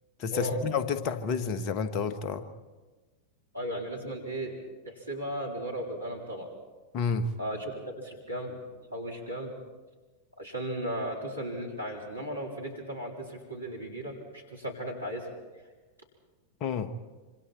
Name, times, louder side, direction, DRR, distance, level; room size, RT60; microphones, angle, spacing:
voice 1, 0.2-2.4 6.9-7.3 16.6-16.9, left 5 dB, 40° left, 10 dB, 1.4 m, -30 dB
voice 2, 3.5-4.6 4.8-6.5 7.4-8.6 8.9-9.5 10.4-15.3, right 1 dB, 85° right, -1 dB, 4.2 m, -36 dB
26.0 x 26.0 x 4.4 m, 1.3 s
figure-of-eight pair, 90°, 0 cm